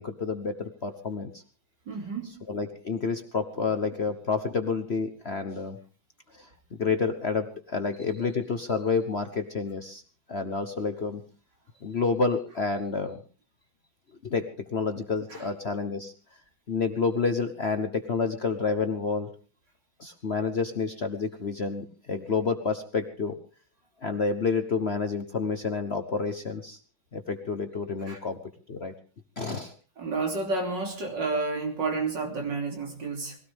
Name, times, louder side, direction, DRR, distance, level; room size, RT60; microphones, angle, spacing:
voice 1, 0.0-1.4 2.5-5.8 6.3-10.0 10.3-11.2 11.8-13.2 14.2-16.1 16.7-19.3 20.0-23.4 24.0-26.8 27.1-28.4 28.7-28.9 29.4-29.7, left 4 dB, 40° left, 7 dB, 1.1 m, -29 dB
voice 2, 1.9-2.4 15.3-15.5 28.1-28.2 30.0-33.4, right 3 dB, 65° right, 2 dB, 3.7 m, -30 dB
21.5 x 17.0 x 3.6 m, 0.36 s
omnidirectional pair, 2.1 m